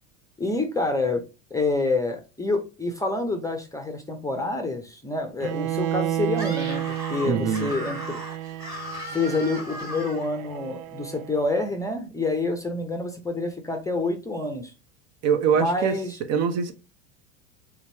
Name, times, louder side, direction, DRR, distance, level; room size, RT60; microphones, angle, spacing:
voice 1, 0.4-1.2 1.5-6.8 7.1-8.2 9.1-14.7 15.5-16.2, left 2 dB, 10° left, 0.6 m, -27 dB
Bowed string instrument, 5.4-11.4, right 12 dB, 85° right, 0.5 m, -32 dB
Screaming, 6.3-10.3, left 1 dB, 10° right, 1.6 m, -37 dB
voice 2, 7.2-7.7 15.2-15.9 16.3-16.7, right 6 dB, 40° right, 0.7 m, -23 dB
3.6 x 3.0 x 2.8 m
hypercardioid pair, 100°, 40 cm